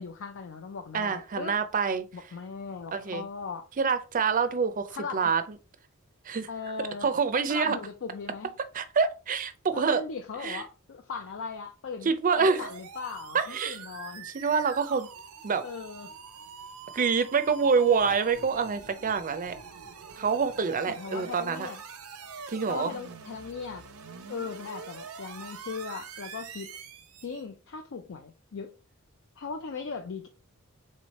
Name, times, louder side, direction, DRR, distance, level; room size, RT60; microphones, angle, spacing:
voice 1, 0.0-1.6 2.1-3.7 4.9-5.2 6.5-7.1 7.5-8.5 9.7-14.3 15.6-16.1 20.9-21.8 22.7-23.8 24.3-26.8 27.2-28.7 29.4-30.3, left 5 dB, 60° left, 0.5 m, -38 dB
voice 2, 0.9-2.1 2.9-3.3 3.8-5.4 6.3-6.5 7.0-7.8 8.7-10.0 10.4-10.6 12.1-12.7 13.3-13.8 14.2-15.1 15.4-15.6 16.9-19.6 20.2-21.7 22.5-22.9, right 5 dB, 40° right, 0.5 m, -26 dB
sound 1, 12.6-27.4, right 6 dB, 85° right, 0.7 m, -45 dB
3.7 x 3.2 x 4.0 m
head